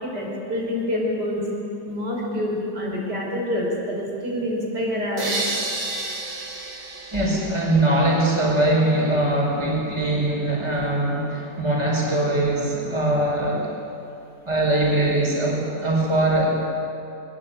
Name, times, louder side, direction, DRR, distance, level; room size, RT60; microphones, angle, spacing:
voice 1, 0.0-1.4 1.8-5.3, left 1 dB, 60° right, -3 dB, 6.0 m, -27 dB
sound 1, 5.2-8.2, right 2 dB, 45° right, 2.8 m, -31 dB
voice 2, 7.1-13.8 14.5-16.5, right 1 dB, 15° right, -3 dB, 5.3 m, -22 dB
22.0 x 22.0 x 9.3 m, 2.6 s
omnidirectional pair, 2.0 m